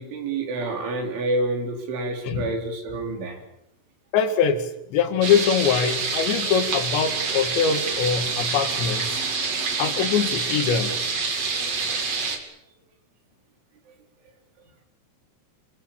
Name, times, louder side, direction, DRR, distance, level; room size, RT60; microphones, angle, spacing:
voice 1, 0.0-3.4, right 2 dB, 80° right, 2 dB, 6.4 m, -28 dB
voice 2, 4.1-9.2 9.8-11.0, left 7 dB, 70° left, 6 dB, 4.2 m, -23 dB
sound 1, 5.2-12.4, right 4 dB, 40° right, 3.2 m, -27 dB
28.0 x 22.0 x 7.4 m, 0.82 s
omnidirectional pair, 5.4 m